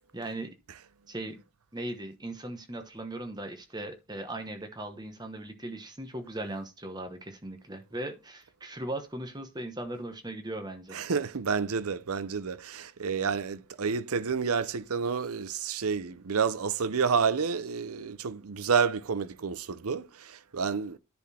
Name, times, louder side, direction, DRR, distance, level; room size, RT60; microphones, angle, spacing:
voice 1, 0.1-0.5 1.1-1.4 1.7-11.0, right 1 dB, 20° right, 1.1 m, -38 dB
voice 2, 10.9-21.0, right 6 dB, 80° right, 0.7 m, -29 dB
10.5 x 4.3 x 4.2 m
head